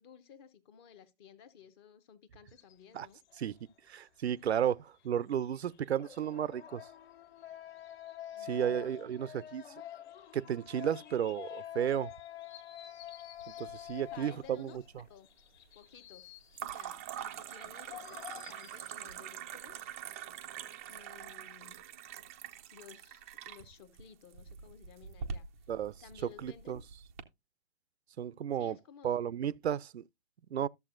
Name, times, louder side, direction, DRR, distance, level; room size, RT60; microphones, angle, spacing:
voice 1, 0.0-3.2 8.3-9.3 13.9-15.3 15.7-16.4 16.6-19.9 20.9-21.8 22.7-25.5 25.9-26.8 28.5-29.2, left 8 dB, 25° left, 0.7 m, -56 dB
sound 1, 2.5-19.1, left 10 dB, 40° left, 1.5 m, -61 dB
sound 2, 3.3-3.5 6.0-14.9 15.1-15.2 17.6-18.5, left 12 dB, 60° left, 0.9 m, -47 dB
voice 2, 3.9-6.8 8.5-9.6 10.3-12.1 13.6-14.8 25.7-25.9 26.4-26.8 28.2-28.8 29.0-30.0 30.5-30.7, right 9 dB, 70° right, 0.5 m, -33 dB
sound 3, 13.4-14.2 14.4-15.1 16.5-27.2, right 8 dB, 15° right, 0.4 m, -45 dB
13.0 x 7.0 x 2.5 m
hypercardioid pair, 135°, 34 cm